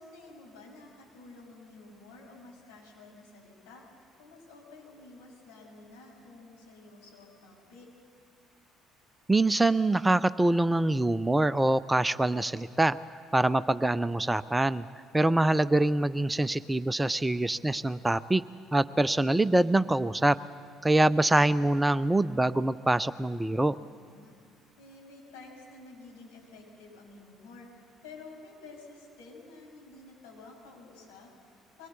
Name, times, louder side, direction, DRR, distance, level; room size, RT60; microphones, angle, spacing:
voice 1, 0.0-3.9 4.2-7.9 23.8-24.3 24.8-31.9, left 3 dB, 65° left, -2 dB, 6.2 m, -51 dB
voice 2, 9.3-13.0 13.3-14.9 15.1-18.4 18.7-20.4 20.8-23.8, right 2 dB, 10° right, 16 dB, 0.5 m, -24 dB
23.5 x 20.0 x 8.2 m, 2.2 s
figure-of-eight pair, 50°, 0 cm